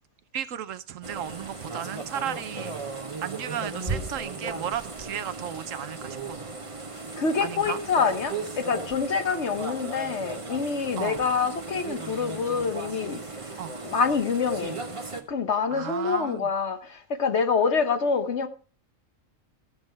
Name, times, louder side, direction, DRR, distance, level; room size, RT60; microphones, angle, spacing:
voice 1, 0.3-2.8 3.2-6.5 7.4-7.8 11.0-11.2 13.6-13.7 15.7-16.5, right 9 dB, 70° right, 1.0 m, -34 dB
sound 1, 1.0-15.2, right 3 dB, 25° right, 1.2 m, -36 dB
voice 2, 7.2-13.2 13.8-14.8 15.3-18.5, left 5 dB, 55° left, 1.3 m, -26 dB
13.5 x 7.5 x 4.6 m
omnidirectional pair, 1.5 m